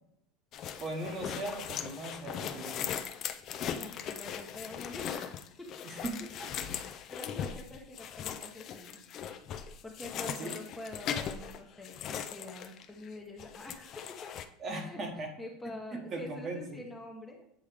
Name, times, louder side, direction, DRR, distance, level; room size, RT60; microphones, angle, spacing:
sound 1, 0.5-13.1 13.4-14.4, left 8 dB, 40° left, 0.5 m, -39 dB
voice 1, 0.8-3.0 5.8-6.5 10.4-10.6 14.6-15.3 15.6-16.8, right 2 dB, 30° right, 3 dB, 1.2 m, -39 dB
voice 2, 3.7-5.9 6.6-9.0 9.6-14.3 14.6-17.4, left 2 dB, 10° left, 0 dB, 0.9 m, -46 dB
8.0 x 3.6 x 3.3 m, 0.78 s
supercardioid pair, 135°, 0 cm